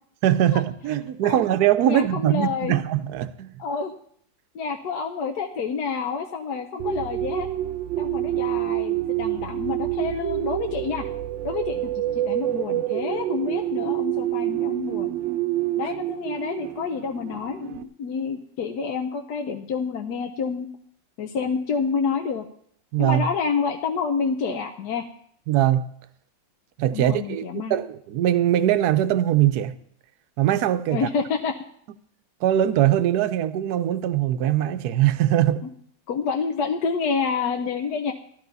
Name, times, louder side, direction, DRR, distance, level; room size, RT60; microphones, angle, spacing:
voice 1, 0.2-3.5 22.9-23.3 25.5-25.9 26.8-29.8 30.4-31.1 32.4-35.6, right 12 dB, 65° right, 1.1 m, -21 dB
voice 2, 1.9-2.7 3.6-3.9 4.5-7.5 8.0-11.1 11.4-15.2 15.8-20.7 21.2-22.5 23.0-25.1 26.9-27.8 30.9-31.6 36.1-38.1, left 5 dB, 65° left, 1.3 m, -28 dB
sound 1, 6.8-17.8, right 14 dB, 85° right, 1.4 m, -27 dB
13.5 x 13.0 x 4.1 m
omnidirectional pair, 2.0 m